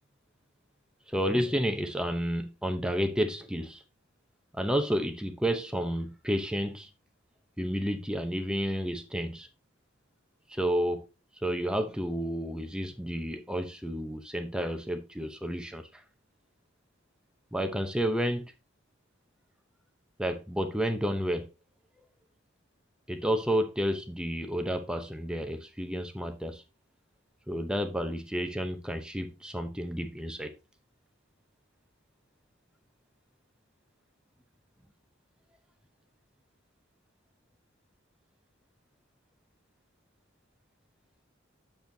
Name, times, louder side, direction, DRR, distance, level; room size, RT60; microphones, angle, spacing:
voice 1, 1.1-3.8 4.5-6.9 7.6-9.5 10.5-11.1 11.4-16.0 17.5-18.5 20.2-21.5 23.1-26.6 27.5-30.5, equal, 5° right, 0.7 m, -31 dB
8.3 x 7.0 x 2.7 m
head